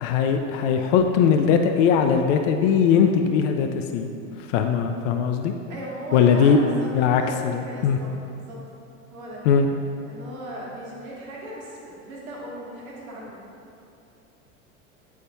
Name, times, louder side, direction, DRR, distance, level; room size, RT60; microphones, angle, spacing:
voice 1, 0.0-4.1 4.5-5.5 6.1-6.6 6.9-8.0 9.5-9.7, left 7 dB, 65° left, 5 dB, 0.5 m, -20 dB
voice 2, 5.7-8.6 9.1-9.4 10.1-13.4, equal, 85° right, -4 dB, 1.2 m, -37 dB
8.3 x 4.2 x 2.7 m, 2.6 s
hypercardioid pair, 85°, 41 cm